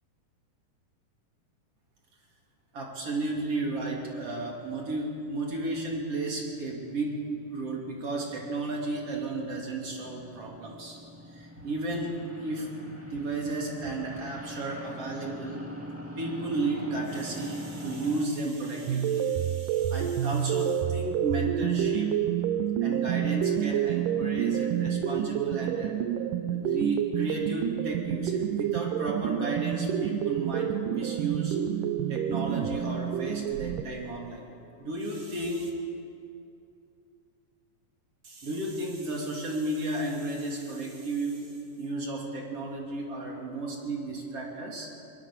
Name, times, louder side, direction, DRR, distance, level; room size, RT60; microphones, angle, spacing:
voice 1, 2.7-7.2 7.5-11.0 11.3-12.7 13.0-15.6 16.2-22.2 22.8-25.9 26.5-31.6 32.1-34.5 34.8-35.7 38.2-41.4 41.8-44.9, right 2 dB, 45° right, -1 dB, 3.8 m, -33 dB
sound 1, 4.0-18.2, equal, 5° right, 1.2 m, -44 dB
sound 2, 18.9-33.8, right 9 dB, 80° right, 2.4 m, -28 dB
22.5 x 21.0 x 7.4 m, 2.5 s
omnidirectional pair, 3.8 m